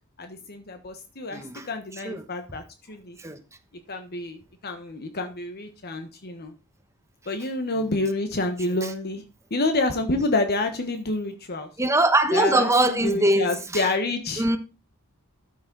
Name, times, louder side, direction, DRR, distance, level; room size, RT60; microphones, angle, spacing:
voice 1, 0.2-3.2 3.9-6.5 7.3-9.2 9.5-11.7 12.3-14.5, left 2 dB, 45° left, 1.2 m, -28 dB
voice 2, 1.3-1.7 2.0-2.2 3.2-3.4 8.8-8.9 11.8-13.8 14.4-14.6, right 1 dB, 15° right, 1.1 m, -22 dB
13.0 x 6.4 x 4.0 m
head